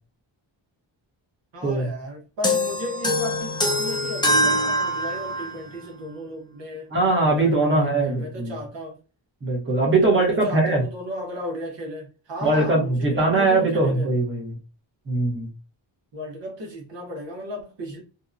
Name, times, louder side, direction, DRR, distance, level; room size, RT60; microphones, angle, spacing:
voice 1, 1.5-6.9 7.2-9.0 10.1-14.1 16.1-18.0, equal, 65° right, 0.9 m, -35 dB
sound 1, 2.4-5.6, equal, 10° left, 0.3 m, -23 dB
voice 2, 6.9-8.5 9.4-10.8 12.4-14.6 15.1-15.5, right 2 dB, 25° right, 0.9 m, -21 dB
2.7 x 2.1 x 2.4 m
wide cardioid pair, 175°, 47 cm